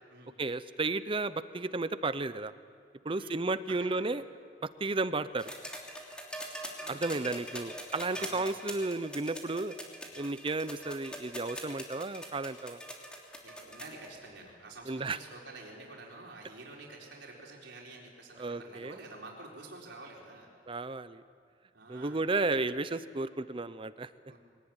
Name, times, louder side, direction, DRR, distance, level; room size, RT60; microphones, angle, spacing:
voice 1, 0.4-2.5 3.0-4.2 4.8-5.5 6.9-9.7 10.2-12.8 14.9-15.2 18.4-19.0 20.7-21.2 21.9-24.1, right 3 dB, 30° right, 14 dB, 0.6 m, -33 dB
voice 2, 3.1-3.4 3.7-4.0 6.4-7.4 8.1-8.4 13.4-20.5 21.7-22.3 24.3-24.4, right 2 dB, 85° right, -2 dB, 4.4 m, -49 dB
sound 1, 5.4-14.1 15.3-15.4, equal, 5° left, 3.1 m, -43 dB
23.0 x 19.0 x 9.0 m, 2.3 s
head